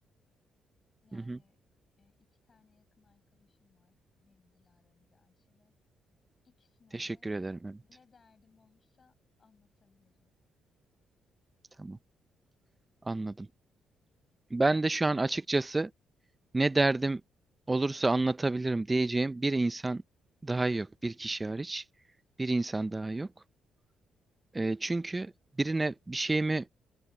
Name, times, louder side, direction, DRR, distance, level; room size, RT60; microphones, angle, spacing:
voice 1, 1.0-1.6 2.0-5.7 6.4-7.3 7.8-10.4 15.2-15.5, left 5 dB, 40° left, 7.9 m, -68 dB
voice 2, 6.9-7.8 11.8-12.0 13.0-13.5 14.5-15.9 16.5-17.2 17.7-20.0 20.4-21.9 22.4-23.3 24.5-25.3 25.6-26.7, right 2 dB, 20° right, 0.4 m, -29 dB
open air
cardioid pair, 90°, 0 cm